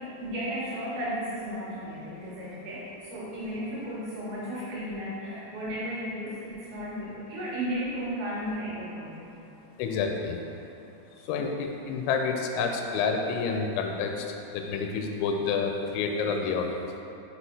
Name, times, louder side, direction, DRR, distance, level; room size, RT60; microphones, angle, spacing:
voice 1, 0.0-9.5 11.3-11.5, equal, 65° right, -9 dB, 2.9 m, -34 dB
voice 2, 9.8-10.4 11.3-16.8, left 5 dB, 85° left, 3 dB, 2.8 m, -29 dB
6.2 x 5.8 x 2.7 m, 2.8 s
omnidirectional pair, 5.5 m